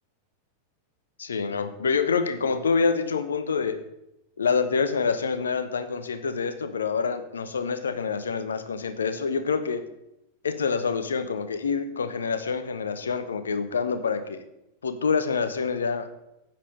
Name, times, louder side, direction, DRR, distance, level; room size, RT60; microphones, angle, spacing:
voice 1, 1.2-3.8 4.4-9.8 10.4-14.4 14.8-16.1, left 5 dB, 70° left, 11 dB, 0.9 m, -26 dB
12.5 x 8.9 x 4.0 m, 0.88 s
figure-of-eight pair, 90°, 0 cm